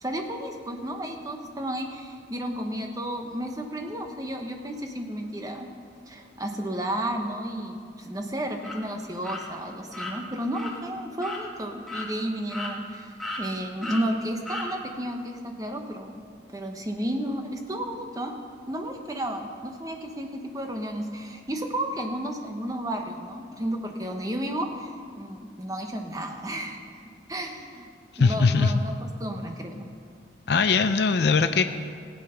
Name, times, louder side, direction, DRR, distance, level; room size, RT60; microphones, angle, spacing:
voice 1, 0.0-5.7 6.1-16.2 16.5-18.3 18.7-26.8 27.3-27.9 28.2-28.9 29.2-29.9, right 1 dB, 20° right, 3 dB, 1.0 m, -32 dB
sound 1, 8.6-8.8 9.2-9.4 9.9-10.1 10.5-10.7 11.2-11.4 11.9-12.1 12.5-12.9 13.2-13.4 13.8-14.0 14.5-14.7, left 2 dB, ahead, 1.6 m, -34 dB
voice 2, 28.1-28.8 30.5-31.6, left 4 dB, 60° left, 8 dB, 0.5 m, -21 dB
15.5 x 8.8 x 5.7 m, 2.2 s
head